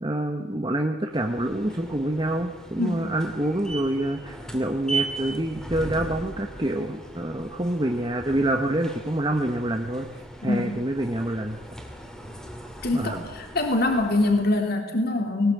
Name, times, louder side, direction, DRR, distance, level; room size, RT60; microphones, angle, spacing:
voice 1, 0.0-11.6 12.9-13.3, right 1 dB, 20° right, 4 dB, 1.1 m, -27 dB
sound 1, 1.1-14.6, right 3 dB, 5° left, 2.6 m, -38 dB
voice 2, 12.8-15.5, left 2 dB, 45° left, 3 dB, 3.1 m, -24 dB
20.0 x 19.0 x 8.4 m, 1.3 s
head